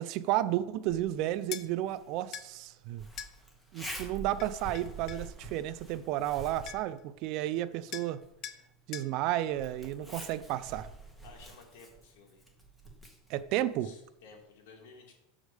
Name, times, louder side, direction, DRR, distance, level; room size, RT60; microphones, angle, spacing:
voice 1, 0.0-3.0 3.7-8.2 8.9-10.9 13.3-13.9, right 13 dB, 45° right, 14 dB, 0.4 m, -32 dB
Zipper (clothing), 0.9-14.4, right 2 dB, 5° left, 1.4 m, -48 dB
sound 1, 1.5-1.7 2.3-2.5 3.2-3.3 4.4-5.3 6.3-6.4 6.7-7.0 7.9-8.1 8.4-8.6 8.9-9.1, left 10 dB, 35° left, 0.5 m, -42 dB
voice 2, 11.2-12.5 13.8-15.1, left 4 dB, 70° left, 0 dB, 2.5 m, -54 dB
6.2 x 5.0 x 6.5 m, 0.84 s
supercardioid pair, 155°, 0 cm